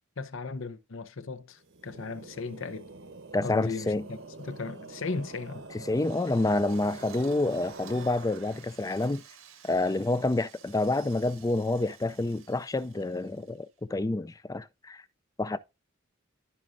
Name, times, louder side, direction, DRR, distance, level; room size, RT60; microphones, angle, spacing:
voice 1, 0.2-2.9 3.4-5.7, left 4 dB, 70° left, 0.7 m, -37 dB
sound 1, 1.6-9.0, right 3 dB, 65° right, 1.0 m, -46 dB
voice 2, 3.3-4.0 5.7-9.2 9.6-15.0 15.4-15.6, left 2 dB, 15° left, 0.3 m, -28 dB
Drill, 5.9-13.8, right 9 dB, 90° right, 1.6 m, -54 dB
13.5 x 5.2 x 2.5 m
head